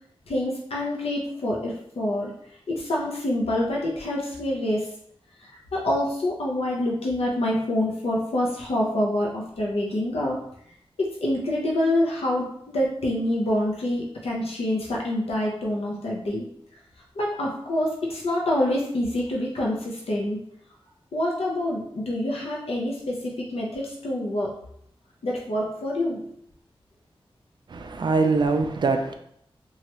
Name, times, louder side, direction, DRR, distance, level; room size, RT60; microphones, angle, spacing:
voice 1, 0.3-2.3 2.7-4.9 5.4-10.4 11.0-16.5 17.2-20.4 21.1-24.5 25.2-26.2, left 1 dB, 85° left, -3 dB, 0.6 m, -26 dB
voice 2, 27.7-29.1, right 4 dB, 50° right, 6 dB, 0.4 m, -23 dB
3.1 x 2.3 x 2.9 m, 0.70 s
wide cardioid pair, 100°, 10 cm